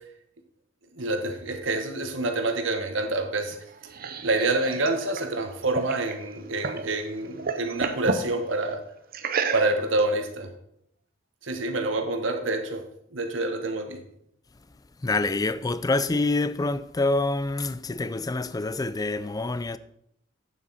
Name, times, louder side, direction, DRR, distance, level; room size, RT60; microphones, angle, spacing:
voice 1, 0.9-3.6 4.2-8.8 9.5-10.5 11.4-12.8 13.1-14.0, right 2 dB, 70° right, 1.3 m, -27 dB
sound 1, 3.5-6.9 7.2-8.3 9.1-10.0, right 4 dB, 50° right, 0.7 m, -31 dB
voice 2, 15.0-19.8, left 2 dB, 20° left, 0.4 m, -26 dB
8.8 x 7.3 x 4.2 m
head